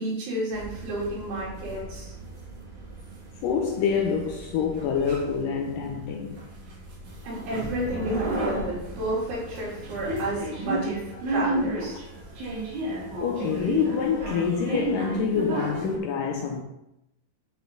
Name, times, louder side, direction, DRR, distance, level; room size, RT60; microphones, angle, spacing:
voice 1, 0.0-2.2 7.3-11.0 11.3-12.0, right 1 dB, 85° right, 5.3 m, -31 dB
sound 1, 0.5-16.0, right 1 dB, 55° right, 3.1 m, -33 dB
voice 2, 3.4-6.4 9.5-9.6 10.7-10.8 11.1-11.2 13.2-16.6, left 6 dB, 90° left, 1.9 m, -27 dB
9.5 x 5.8 x 3.8 m
omnidirectional pair, 4.6 m